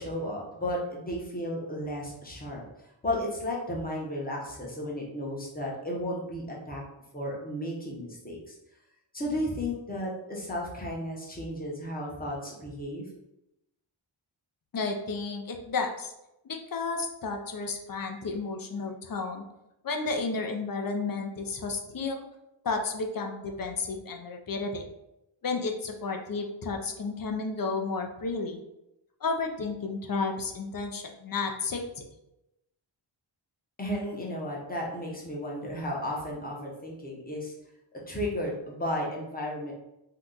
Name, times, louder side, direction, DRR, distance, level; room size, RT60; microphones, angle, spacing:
voice 1, 0.0-2.6 3.0-6.8 7.1-8.5 9.1-13.1 33.8-37.5 38.1-39.7, left 1 dB, 20° left, -3 dB, 0.8 m, -34 dB
voice 2, 14.7-16.1 16.4-19.4 19.8-22.2 22.6-24.9 25.4-28.6 29.2-32.0, left 4 dB, 45° left, 3 dB, 0.5 m, -32 dB
2.8 x 2.3 x 3.7 m, 0.88 s
wide cardioid pair, 95°, 48 cm